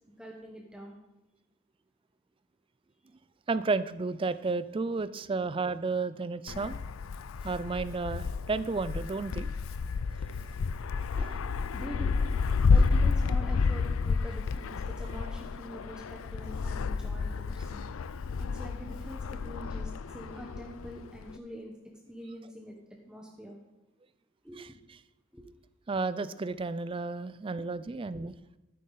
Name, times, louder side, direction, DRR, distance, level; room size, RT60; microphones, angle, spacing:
voice 1, 0.1-1.0 11.7-12.3 12.7-17.8 18.4-21.7 22.1-22.8 23.1-23.6 24.4-24.8 25.3-25.5 27.9-28.1, equal, 5° right, -1 dB, 1.0 m, -45 dB
voice 2, 3.5-6.8 7.4-9.5 10.4-10.5 11.1-11.5 12.7-12.8 24.6-24.7 25.9-28.3, right 3 dB, 25° right, 14 dB, 0.4 m, -32 dB
Wind, 6.5-21.4, left 4 dB, 80° left, 0.4 m, -30 dB
12.5 x 9.3 x 4.0 m, 1.0 s
head